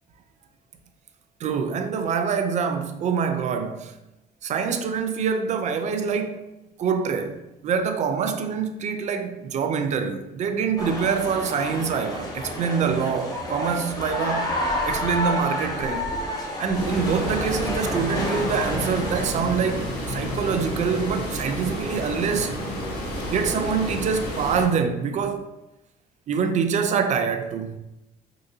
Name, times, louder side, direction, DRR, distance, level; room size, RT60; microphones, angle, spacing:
voice 1, 1.4-3.9 4.4-6.4 6.8-14.5 14.8-16.1 16.6-22.6 23.3-25.5 26.3-27.8, right 6 dB, 45° right, 0.4 m, -25 dB
sound 1, 10.8-19.3, left 1 dB, 20° left, 0.8 m, -30 dB
sound 2, 16.7-24.7, equal, 80° left, 1.3 m, -30 dB
3.7 x 2.6 x 2.7 m
cardioid pair, 110°, 17 cm